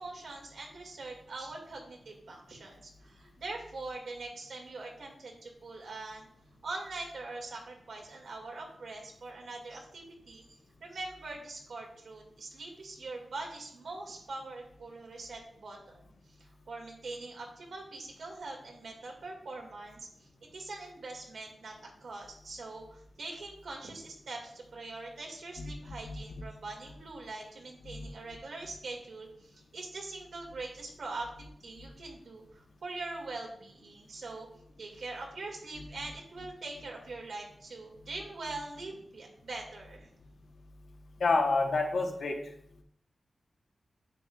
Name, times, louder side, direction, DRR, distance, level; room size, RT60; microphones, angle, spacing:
voice 1, 0.0-6.3 6.6-16.1 16.4-34.5 34.8-40.1, right 3 dB, 80° right, 0 dB, 2.1 m, -43 dB
voice 2, 41.2-42.5, left 3 dB, 75° left, 2 dB, 1.2 m, -29 dB
9.7 x 7.7 x 2.4 m, 0.67 s
wide cardioid pair, 130°, 0 cm